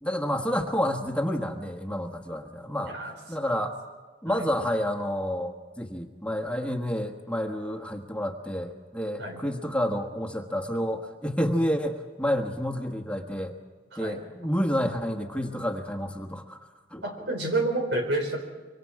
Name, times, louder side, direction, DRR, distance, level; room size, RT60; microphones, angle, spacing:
voice 1, 0.0-3.0 3.3-3.8 4.2-13.5 14.0-16.6 16.9-17.0, equal, 5° left, 3 dB, 1.4 m, -29 dB
voice 2, 17.0-18.4, right 2 dB, 85° right, 4 dB, 4.3 m, -29 dB
25.0 x 24.5 x 4.8 m, 1.4 s
head